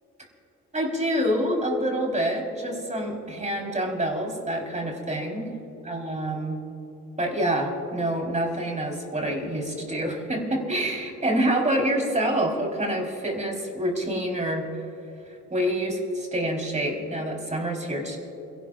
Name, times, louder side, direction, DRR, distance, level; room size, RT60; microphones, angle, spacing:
voice 1, 0.7-5.5 5.8-6.6 7.2-14.7 15.3-18.2, right 1 dB, 25° right, 0 dB, 4.2 m, -27 dB
29.0 x 18.0 x 2.5 m, 2.9 s
cardioid pair, 90°, 30 cm